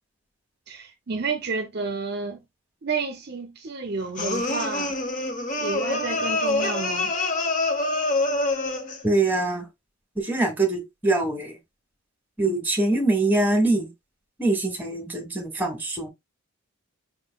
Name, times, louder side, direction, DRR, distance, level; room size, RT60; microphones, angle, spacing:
voice 1, 0.7-2.4 2.8-5.0 5.6-7.1, right 4 dB, 45° right, 0.6 m, -30 dB
sound 1, 4.2-9.0, left 2 dB, 35° left, 0.9 m, -26 dB
voice 2, 9.0-9.6 10.2-11.5 12.4-13.9 14.4-16.1, right 2 dB, 10° right, 1.4 m, -23 dB
5.7 x 3.8 x 2.2 m
head